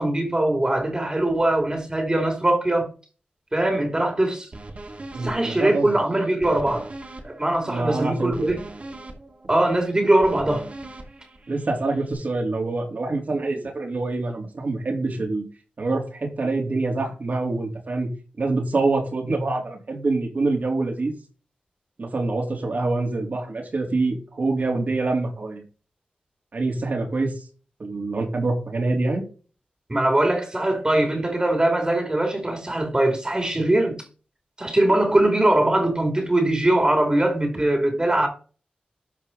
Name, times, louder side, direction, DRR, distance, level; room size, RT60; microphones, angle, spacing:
voice 1, 0.0-2.9 3.5-4.5 5.2-6.9 7.2-8.6 9.5-10.7 29.9-34.0 34.6-38.3, right 1 dB, 25° right, 2.7 m, -21 dB
sound 1, 4.5-12.1, right 2 dB, 45° right, 2.6 m, -41 dB
voice 2, 5.1-5.9 7.7-8.3 11.5-15.4 15.8-18.1 18.4-21.2 22.0-25.6 26.5-27.3 27.8-29.2, right 3 dB, 65° right, 3.4 m, -25 dB
12.5 x 4.9 x 4.0 m
cardioid pair, 50°, 3 cm